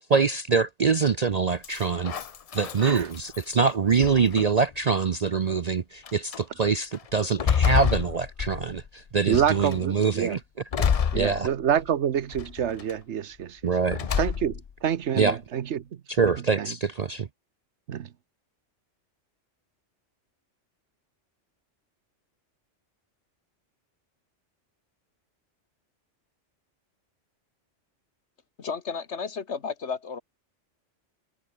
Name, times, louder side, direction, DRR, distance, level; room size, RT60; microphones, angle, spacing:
voice 1, 0.1-2.1 2.5-10.4 11.0-11.5 13.6-14.2 15.1-15.4 16.1-17.3, right 5 dB, 45° right, 0.6 m, -24 dB
sound 1, 1.6-3.5 4.0-4.7 5.5-5.6 6.1-6.4 6.9-8.9 9.3-9.8 10.7-11.9 12.3-12.9 13.9-14.7, left 7 dB, 45° left, 0.5 m, -28 dB
voice 2, 9.3-10.4 11.1-13.6 14.2-15.8 16.6-16.7 17.9-18.1, right 9 dB, 70° right, 1.1 m, -27 dB
voice 3, 28.6-30.2, left 5 dB, 65° left, 1.8 m, -33 dB
omnidirectional pair, 1.2 m